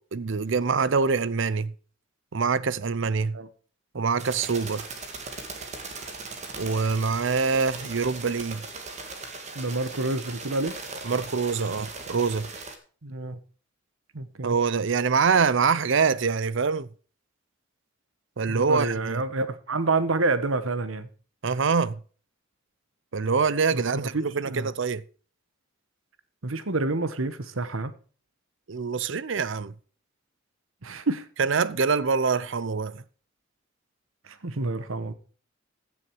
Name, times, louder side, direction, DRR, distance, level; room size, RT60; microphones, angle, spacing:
voice 1, 0.0-1.7 2.3-3.4 3.9-4.8 6.6-8.6 11.0-12.5 14.4-16.9 18.4-19.2 21.4-22.0 23.1-25.0 28.7-29.7 31.4-33.0, right 5 dB, 65° right, 0.6 m, -25 dB
sound 1, 4.2-12.8, right 3 dB, 35° right, 2.1 m, -39 dB
voice 2, 9.5-10.8 13.0-13.4 14.1-14.6 18.5-21.1 23.7-24.7 26.4-27.9 30.8-31.3 34.2-35.1, right 3 dB, 80° right, 1.2 m, -28 dB
15.5 x 7.1 x 4.6 m
head